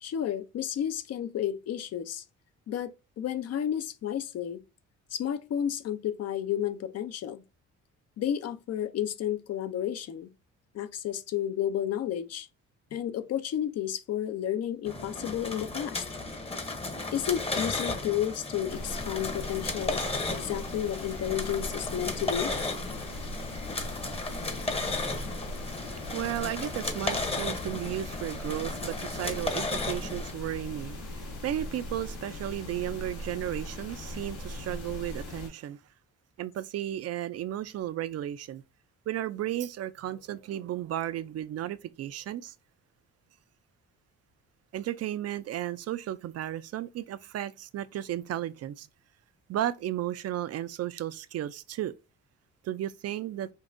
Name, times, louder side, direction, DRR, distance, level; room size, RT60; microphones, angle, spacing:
voice 1, 0.0-2.2 2.7-4.6 5.1-7.4 8.2-10.3 10.7-12.5 12.9-16.0 17.1-20.0 20.3-22.5, left 10 dB, 55° left, 0.5 m, -32 dB
sound 1, 14.9-30.3, left 2 dB, 20° left, 0.8 m, -34 dB
sound 2, 18.7-35.5, left 1 dB, 75° left, 1.3 m, -40 dB
voice 2, 25.7-35.8 36.4-38.6 39.1-42.5 44.7-48.9 49.5-51.9 52.6-53.5, right 12 dB, 55° right, 0.4 m, -34 dB
5.2 x 2.3 x 2.5 m
cardioid pair, 90°, 30 cm